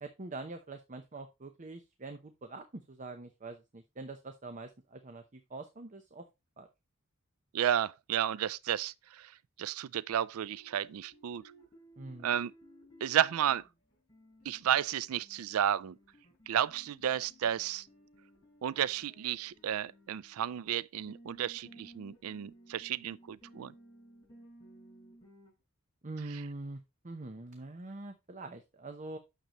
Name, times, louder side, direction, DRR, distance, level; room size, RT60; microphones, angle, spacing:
voice 1, 0.0-6.2 6.6-6.7 12.0-12.3 26.0-29.2, right 2 dB, 35° right, 0.8 m, -44 dB
voice 2, 7.5-9.3 9.6-11.4 12.2-12.5 13.0-13.6 14.5-16.0 16.5-17.9 18.6-23.7 26.3-26.4, right 10 dB, 85° right, 0.4 m, -32 dB
sound 1, 10.4-25.5, equal, 20° left, 4.7 m, -58 dB
9.1 x 6.6 x 3.0 m
head